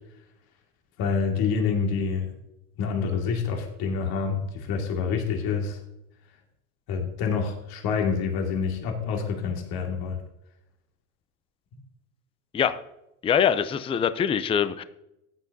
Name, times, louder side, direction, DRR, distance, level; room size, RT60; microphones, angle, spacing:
voice 1, 1.0-2.3 2.8-5.8 6.9-10.2, left 5 dB, 55° left, 2 dB, 2.2 m, -27 dB
voice 2, 13.2-14.8, left 8 dB, 15° left, 13 dB, 0.4 m, -23 dB
14.5 x 9.6 x 2.7 m, 0.87 s
supercardioid pair, 100°, 44 cm